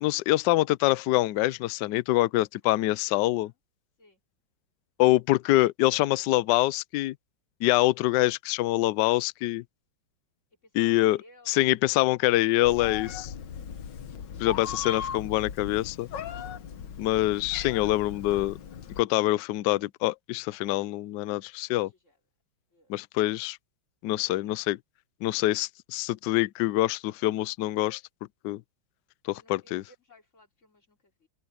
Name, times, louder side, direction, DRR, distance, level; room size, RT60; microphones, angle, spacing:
voice 1, 0.0-3.5 5.0-7.1 7.6-9.6 10.7-11.2 11.5-13.3 14.4-16.1 17.0-18.6 19.0-21.9 22.9-23.6 24.0-24.8 25.2-28.0 28.4-28.6 29.2-29.8, left 17 dB, 75° left, 1.0 m, -25 dB
voice 2, 10.6-11.7 21.7-22.2 22.7-22.9 24.2-24.7 29.3-31.3, left 2 dB, 35° left, 3.9 m, -58 dB
Meow, 12.6-19.0, left 7 dB, 60° left, 1.6 m, -38 dB
open air
omnidirectional pair, 2.4 m